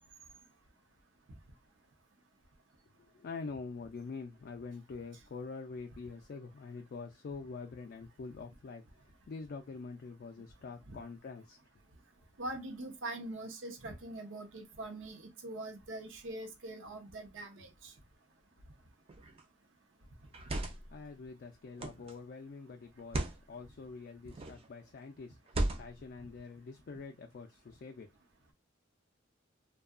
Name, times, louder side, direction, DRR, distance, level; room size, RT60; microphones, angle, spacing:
voice 1, 3.0-8.8 9.3-11.6 20.9-28.1, left 4 dB, 50° left, 0.3 m, -45 dB
voice 2, 12.4-17.9, right 2 dB, 70° right, 0.7 m, -43 dB
sound 1, 19.1-19.4 20.2-21.0 21.8-22.1 23.0-23.4 24.3-24.7 25.5-26.1, right 1 dB, 30° right, 0.4 m, -36 dB
2.7 x 2.2 x 2.3 m
head